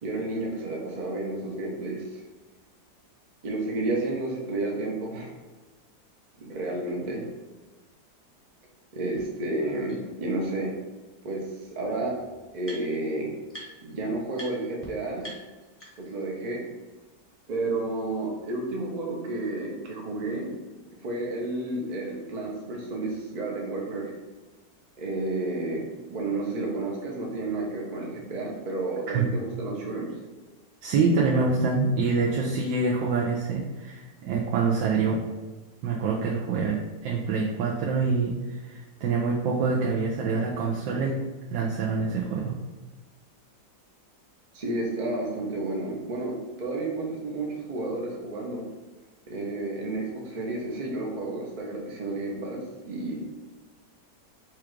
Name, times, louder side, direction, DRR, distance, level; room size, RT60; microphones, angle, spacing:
voice 1, 0.0-2.2 3.4-5.3 6.4-7.2 8.9-10.7 11.2-11.4 11.7-12.2 12.5-13.3 13.8-15.2 16.0-16.6 17.5-20.5 21.0-24.1 25.0-30.1 44.5-48.6 49.3-53.2, right 2 dB, 55° right, -2 dB, 0.4 m, -31 dB
sound 1, 9.2-9.3 9.9-10.0 11.3-11.4 11.6-13.1 13.5-13.9 14.3-14.5 14.8-14.9 15.2-16.2, right 1 dB, 10° left, 0.7 m, -45 dB
voice 2, 30.8-35.2 35.8-41.2 41.5-42.5, right 4 dB, 85° right, -2 dB, 1.3 m, -26 dB
4.7 x 2.4 x 4.5 m, 1.2 s
omnidirectional pair, 1.9 m